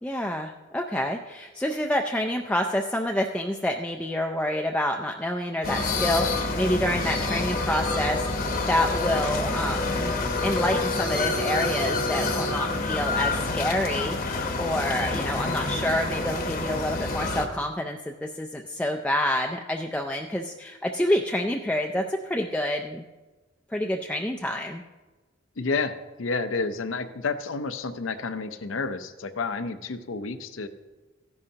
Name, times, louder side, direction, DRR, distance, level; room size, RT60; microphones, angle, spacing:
voice 1, 0.0-10.1 10.4-23.0 23.7-24.8, left 1 dB, 5° left, 2 dB, 0.4 m, -28 dB
sound 1, 5.6-17.5, left 3 dB, 45° left, 1.0 m, -27 dB
voice 2, 25.6-30.7, left 4 dB, 75° left, 10 dB, 0.6 m, -30 dB
14.0 x 10.5 x 2.8 m, 1.2 s
head